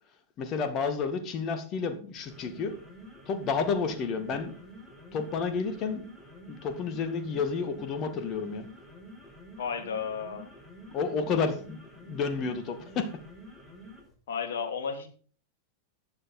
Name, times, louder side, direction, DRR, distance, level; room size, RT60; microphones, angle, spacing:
voice 1, 0.4-2.8 3.3-4.5 5.1-6.0 6.5-8.7 10.9-11.8 12.0-13.1, left 5 dB, 35° left, 9 dB, 2.2 m, -30 dB
sound 1, 2.1-14.1, equal, 5° left, 5.2 m, -49 dB
voice 2, 9.6-10.5 14.3-15.1, left 6 dB, 60° left, 6 dB, 2.9 m, -33 dB
14.0 x 10.0 x 4.0 m, 0.40 s
figure-of-eight pair, 90°, 0 cm